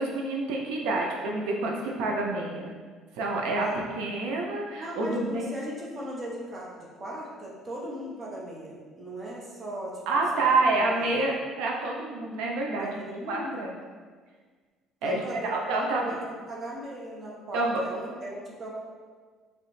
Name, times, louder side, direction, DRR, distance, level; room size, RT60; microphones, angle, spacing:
voice 1, 0.0-2.7 3.2-3.7 4.0-5.5 10.1-12.9 13.3-13.7 15.0-16.0 17.5-17.8, right 2 dB, 90° right, 0 dB, 0.4 m, -28 dB
voice 2, 4.8-10.2 10.5-11.2 12.8-13.6 15.0-18.7, right 1 dB, 25° right, -4 dB, 0.6 m, -38 dB
3.0 x 2.8 x 3.0 m, 1.5 s
cardioid pair, 145°, 0 cm